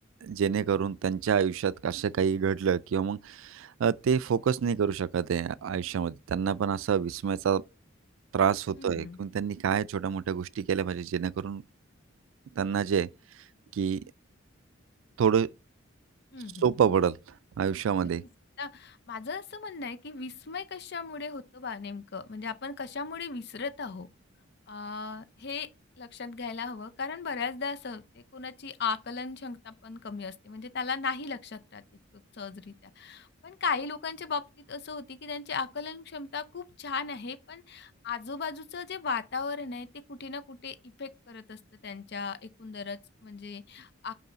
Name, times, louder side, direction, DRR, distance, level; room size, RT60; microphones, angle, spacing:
voice 1, 0.2-7.6 8.3-11.6 12.6-13.1 13.7-14.0 15.2-15.5 16.6-17.2 17.6-18.2, right 7 dB, 75° right, 0.3 m, -27 dB
voice 2, 8.8-9.2 16.3-16.7 18.6-24.1 24.7-25.7 26.0-31.8 32.3-44.1, left 5 dB, 55° left, 0.6 m, -37 dB
5.5 x 5.4 x 4.0 m
head